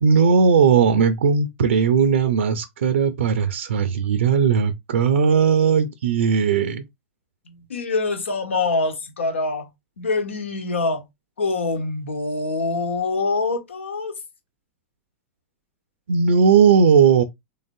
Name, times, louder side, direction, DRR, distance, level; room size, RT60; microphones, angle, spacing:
voice 1, 0.0-6.9 16.1-17.2, right 6 dB, 80° right, 0.5 m, -18 dB
voice 2, 7.5-9.7 10.0-11.0 11.4-14.1, left 3 dB, 85° left, 1.2 m, -25 dB
3.8 x 3.4 x 2.6 m
hypercardioid pair, 100°, 6 cm